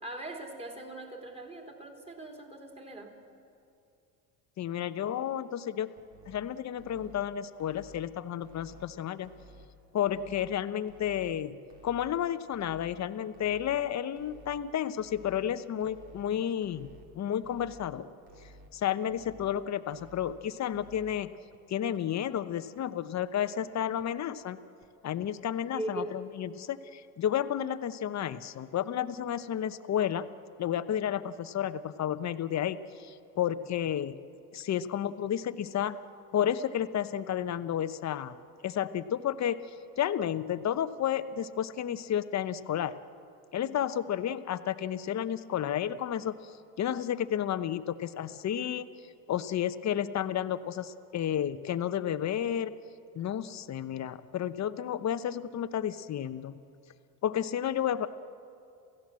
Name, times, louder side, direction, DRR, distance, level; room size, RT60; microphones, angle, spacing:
voice 1, 0.0-3.2 25.7-26.1, right 1 dB, 15° right, 2 dB, 3.5 m, -40 dB
voice 2, 4.6-5.9 6.3-9.3 9.9-11.6 11.8-18.1 18.7-21.3 21.7-24.6 25.0-30.3 30.6-34.2 34.5-36.0 36.3-38.3 38.6-39.6 40.0-42.9 43.5-48.9 49.3-52.7 53.1-56.6 57.2-58.1, left 10 dB, 40° left, 12 dB, 1.0 m, -31 dB
sound 1, 6.0-6.4 6.8-7.2 7.6-8.0 8.4-8.8 9.2-9.7 10.1-10.5 10.9-11.3 11.7-12.1 12.5-12.9 13.3-13.8 14.2-14.6 15.0-15.4 15.8-16.2 16.6-17.1 17.4-17.9 18.3-18.7 19.1-19.5 19.9-20.3 20.7-21.1 21.5-21.6 22.0-22.1 22.4-22.5 22.8-22.9 23.2-23.3 23.6-23.7 24.0-24.1 24.4-24.5 24.8-24.9 25.2-25.3, right 1 dB, 55° right, 3.6 m, -54 dB
28.0 x 16.5 x 7.7 m, 2.6 s
supercardioid pair, 95°, 44 cm